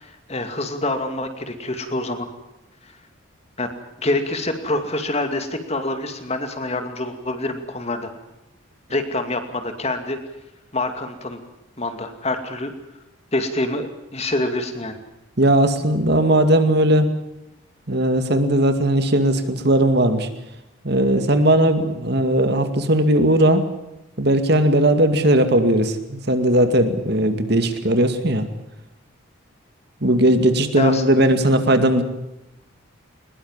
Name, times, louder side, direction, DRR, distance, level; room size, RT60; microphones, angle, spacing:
voice 1, 0.0-2.3 2.8-2.9 3.6-3.7 4.0-8.1 8.9-10.2 10.7-11.4 11.8-12.7 13.3-15.0 30.8-31.0, left 2 dB, 30° left, 7 dB, 2.4 m, -26 dB
voice 2, 15.4-17.1 17.9-20.3 20.8-23.6 24.2-28.5 30.0-32.0, right 1 dB, 50° right, 8 dB, 2.3 m, -18 dB
22.0 x 21.0 x 7.4 m, 0.91 s
head